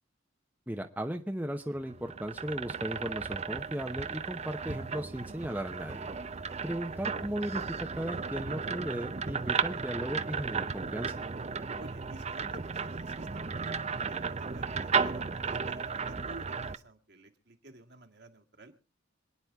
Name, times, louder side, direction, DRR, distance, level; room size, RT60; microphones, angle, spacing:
voice 1, 0.7-6.1 6.6-7.6 7.9-11.1, equal, 10° right, 4 dB, 0.9 m, -36 dB
sound 1, 1.8-16.8, right 5 dB, 35° right, 0.6 m, -35 dB
voice 2, 11.8-18.7, right 2 dB, 55° right, 4 dB, 1.8 m, -51 dB
26.5 x 9.8 x 3.6 m, 0.33 s
head